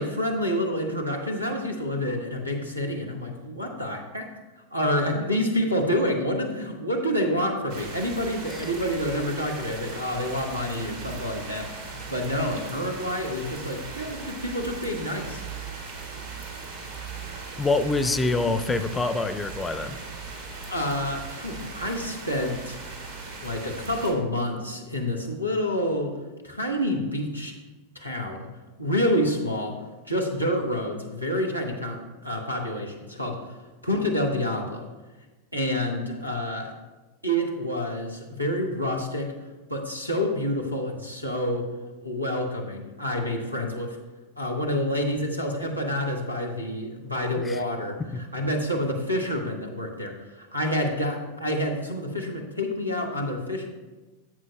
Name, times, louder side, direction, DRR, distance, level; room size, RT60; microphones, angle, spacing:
voice 1, 0.0-4.3 4.7-15.4 20.7-22.8 23.4-26.2 26.4-27.5 27.9-28.5 28.8-29.8 30.1-33.4 33.8-34.9 35.5-36.7 37.2-39.3 39.7-41.7 42.0-44.0 44.4-53.7, equal, 90° right, 1 dB, 1.2 m, -28 dB
sound 1, 7.7-24.1, right 4 dB, 60° right, 1.9 m, -38 dB
voice 2, 17.6-20.0 47.4-47.6, left 3 dB, 15° left, 11 dB, 0.4 m, -25 dB
13.5 x 7.5 x 2.2 m, 1.2 s
figure-of-eight pair, 90°, 0 cm